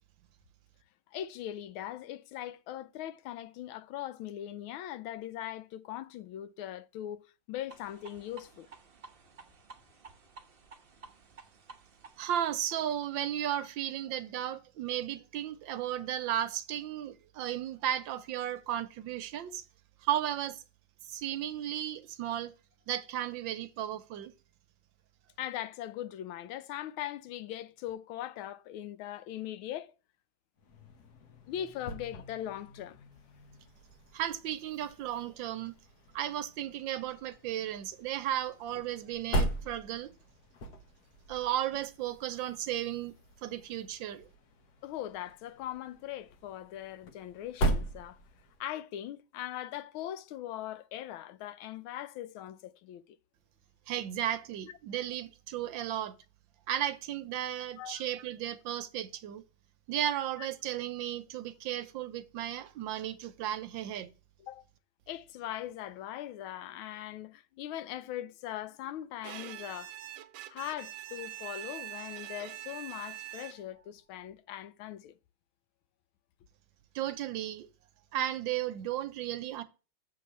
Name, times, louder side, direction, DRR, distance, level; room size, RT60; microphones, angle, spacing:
voice 1, 1.1-7.2 7.5-8.7 25.4-29.9 31.5-33.0 44.8-48.2 48.6-53.2 57.8-58.1 60.4-60.5 64.4-64.7 65.1-69.9 70.5-75.2, left 12 dB, 85° left, 1.4 m, -40 dB
sound 1, 7.7-13.1, right 4 dB, 40° right, 0.8 m, -54 dB
voice 2, 12.2-19.6 20.0-20.6 21.0-22.5 22.9-24.3 34.1-35.7 36.1-40.1 41.3-43.1 43.4-44.3 53.9-56.2 56.7-59.4 59.9-64.1 76.9-77.7 78.1-79.6, right 11 dB, 75° right, 1.3 m, -34 dB
sound 2, 30.6-48.7, right 1 dB, 55° left, 1.5 m, -40 dB
Bowed string instrument, 69.2-73.8, right 13 dB, 90° right, 1.4 m, -44 dB
7.7 x 3.9 x 6.8 m
omnidirectional pair, 2.2 m